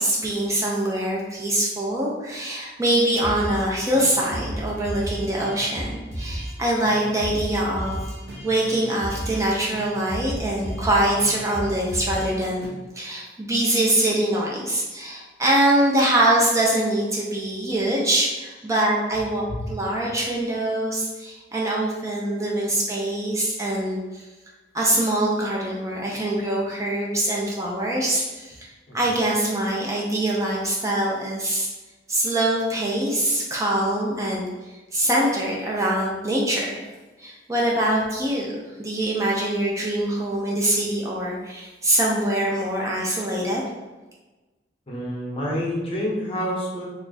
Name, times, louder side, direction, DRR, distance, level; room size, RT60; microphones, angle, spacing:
voice 1, 0.0-8.0 8.4-12.6 12.9-24.3 24.7-28.7 28.9-31.7 32.1-36.9 37.2-38.5 38.8-43.6, right 1 dB, 20° right, -3 dB, 0.5 m, -24 dB
sound 1, 3.2-3.7 3.9-6.6 6.8-6.9 7.2-9.4 9.7-12.3 12.6-12.7, right 1 dB, 80° right, 1.3 m, -33 dB
voice 2, 44.9-46.8, equal, 35° left, -4 dB, 0.9 m, -28 dB
3.1 x 2.3 x 3.9 m, 1.2 s
head